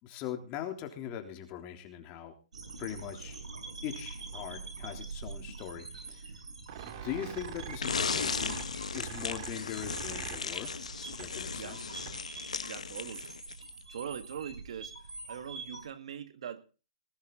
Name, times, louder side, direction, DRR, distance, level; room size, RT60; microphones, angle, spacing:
voice 1, 0.0-2.3 2.8-3.4 3.8-6.3 6.8-8.6 8.9-10.7 11.0-11.9, left 10 dB, 30° left, 5 dB, 3.4 m, -41 dB
sound 1, 2.5-15.8, right 4 dB, 90° right, 6.1 m, -45 dB
sound 2, 6.7-12.4, right 10 dB, 45° right, 2.7 m, -45 dB
sound 3, 7.8-13.7, left 5 dB, 90° left, 1.6 m, -36 dB
voice 2, 12.7-13.3 13.9-14.9 15.3-16.6, right 8 dB, 65° right, 11 dB, 1.9 m, -41 dB
19.5 x 11.0 x 4.0 m, 0.34 s
hypercardioid pair, 140°, 4 cm